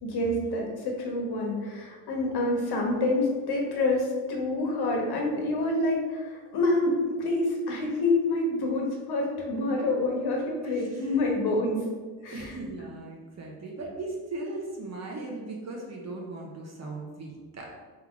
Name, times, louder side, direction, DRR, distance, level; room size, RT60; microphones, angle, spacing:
voice 1, 0.0-11.8 12.2-12.4, left 2 dB, 60° left, 0 dB, 1.3 m, -27 dB
voice 2, 10.6-11.3 12.2-17.7, right 2 dB, 35° right, -1 dB, 0.9 m, -38 dB
3.6 x 3.2 x 3.6 m, 1.4 s
supercardioid pair, 85°, 44 cm